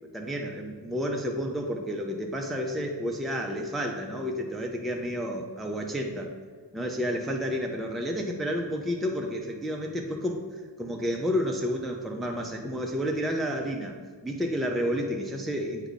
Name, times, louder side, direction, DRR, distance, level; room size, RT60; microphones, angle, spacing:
voice 1, 0.0-6.3 6.7-10.4 10.8-14.0 14.2-15.9, equal, ahead, 1 dB, 0.5 m, -30 dB
8.1 x 3.4 x 4.0 m, 1.6 s
wide cardioid pair, 85°, 43 cm